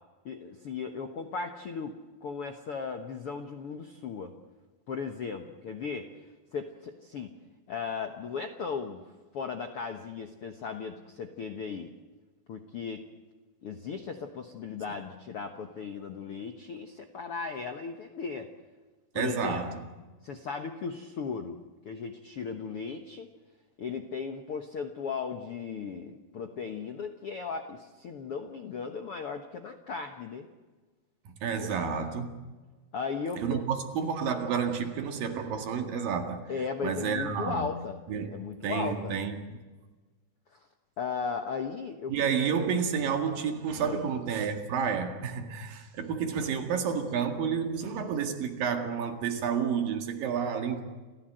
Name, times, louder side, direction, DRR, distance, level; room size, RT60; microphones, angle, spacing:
voice 1, 0.2-1.9 2.2-4.3 4.9-6.1 6.5-7.3 7.7-9.0 9.3-11.9 12.5-13.0 13.6-18.5 19.1-19.6 20.2-21.6 21.8-23.3 23.8-30.5 31.6-31.7 32.9-33.6 36.5-38.0 38.3-39.1 40.5-40.6 41.0-42.1 43.8-44.1, left 5 dB, 65° left, 1.5 m, -36 dB
voice 2, 19.2-19.8 31.3-32.4 33.4-36.5 36.8-37.7 38.1-38.4 38.6-39.4 42.1-50.8, right 6 dB, 65° right, 3.6 m, -30 dB
29.0 x 15.5 x 7.9 m
omnidirectional pair, 4.4 m